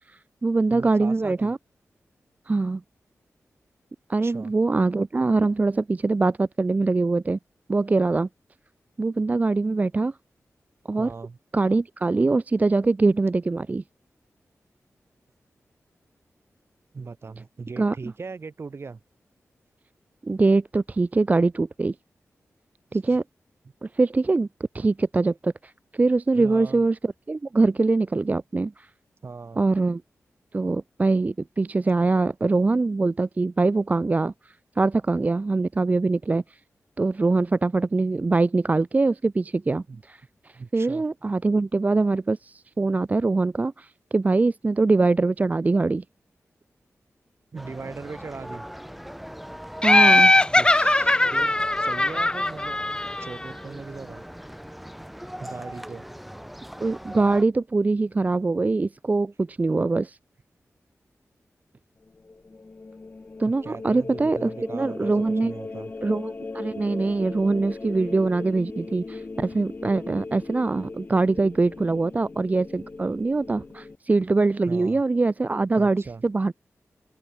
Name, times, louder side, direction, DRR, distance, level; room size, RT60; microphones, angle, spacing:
voice 1, 0.1-1.6 2.5-2.8 4.1-7.4 7.7-8.3 9.0-10.1 10.9-11.1 11.5-13.8 17.8-17.9 20.2-22.0 22.9-23.2 23.8-24.5 24.7-28.9 29.6-30.0 30.5-36.6 37.0-46.0 49.8-50.3 56.8-60.2 63.4-65.5 66.0-76.5, right 3 dB, 30° right, 0.5 m, -23 dB
voice 2, 0.7-1.5 4.2-4.5 11.0-11.4 16.9-19.0 22.9-23.2 26.3-26.9 29.2-29.6 39.9-40.0 40.5-41.0 47.5-48.6 50.6-52.8 53.2-54.2 55.4-56.1 63.5-65.9 74.7-75.0 75.8-76.2, right 4 dB, 50° right, 7.1 m, -39 dB
sound 1, 47.6-57.4, equal, ahead, 6.1 m, -40 dB
Laughter, 49.8-53.5, left 2 dB, 15° left, 0.7 m, -19 dB
sound 2, 62.0-74.0, left 3 dB, 35° left, 1.9 m, -38 dB
open air
wide cardioid pair, 105°, 5 cm